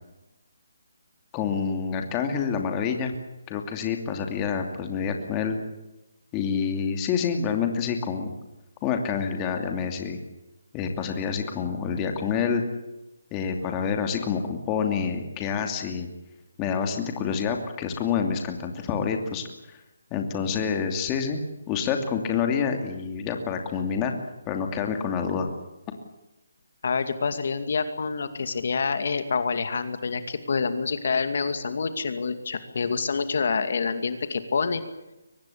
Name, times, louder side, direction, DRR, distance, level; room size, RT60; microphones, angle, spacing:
voice 1, 1.3-3.1 3.5-5.6 6.3-8.3 8.8-10.2 10.7-12.6 13.3-16.1 16.6-19.8 20.1-21.4 21.7-24.1 24.5-25.5, left 6 dB, 15° left, 4 dB, 2.7 m, -27 dB
voice 2, 26.8-34.8, left 5 dB, 55° left, 10 dB, 2.4 m, -27 dB
24.0 x 19.5 x 8.7 m, 0.95 s
hypercardioid pair, 165°, 0 cm